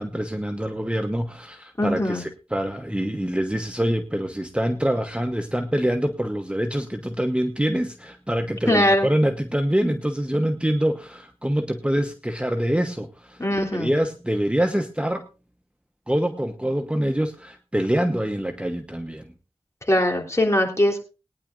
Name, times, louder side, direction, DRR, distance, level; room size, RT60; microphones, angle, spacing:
voice 1, 0.0-2.2 2.5-13.4 13.7-15.3 16.1-19.2, equal, 10° right, 6 dB, 0.9 m, -25 dB
voice 2, 1.8-2.2 8.7-9.1 13.4-13.9 19.9-21.0, left 1 dB, 25° left, 1 dB, 3.3 m, -21 dB
21.0 x 9.8 x 2.5 m, 0.33 s
wide cardioid pair, 55°, 11 cm